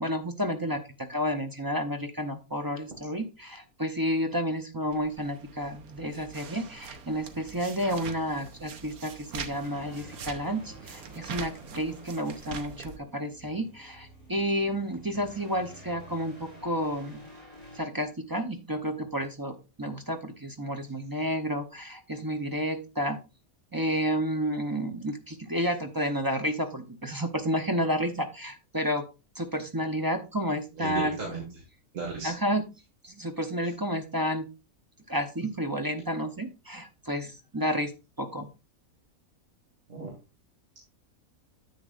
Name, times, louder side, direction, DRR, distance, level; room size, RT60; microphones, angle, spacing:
voice 1, 0.0-17.2 17.7-23.2 23.7-29.0 29.4-31.2 32.2-32.6 33.0-34.5 35.1-37.9 38.2-38.5, equal, 20° right, 6 dB, 0.6 m, -31 dB
sound 1, 4.9-13.0, right 5 dB, 85° right, 1.4 m, -43 dB
sound 2, 9.5-17.8, equal, 25° left, 3.7 m, -51 dB
voice 2, 30.8-31.6 31.9-32.3 39.9-40.1, right 4 dB, 60° right, 0 dB, 2.2 m, -34 dB
10.0 x 8.1 x 2.5 m, 0.29 s
omnidirectional pair, 1.5 m